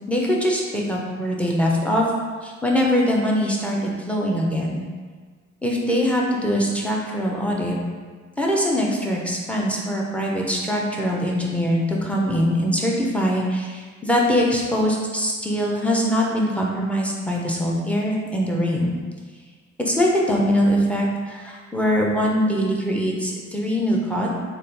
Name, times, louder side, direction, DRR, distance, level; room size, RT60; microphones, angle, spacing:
voice 1, 0.1-2.1 2.4-4.8 5.6-7.7 8.4-18.9 19.8-24.3, equal, 5° left, -3 dB, 0.6 m, -22 dB
3.7 x 2.5 x 3.3 m, 1.5 s
cardioid pair, 90°, 30 cm